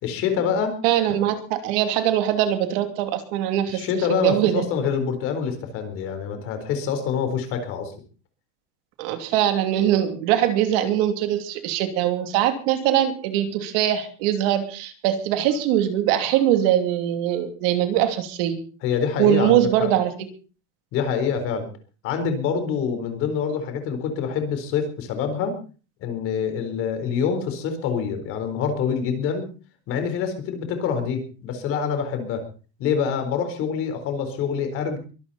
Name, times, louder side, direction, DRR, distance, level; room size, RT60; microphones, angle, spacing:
voice 1, 0.0-0.8 3.7-7.9 18.8-19.9 20.9-21.7 22.0-25.6 26.0-29.5 29.9-32.4 32.8-35.0, left 6 dB, 40° left, 8 dB, 4.2 m, -26 dB
voice 2, 0.8-3.9 4.2-4.7 9.0-18.6 19.2-20.3, right 11 dB, 55° right, 7 dB, 3.0 m, -22 dB
23.5 x 12.5 x 4.2 m, 0.38 s
cardioid pair, 180°, 34 cm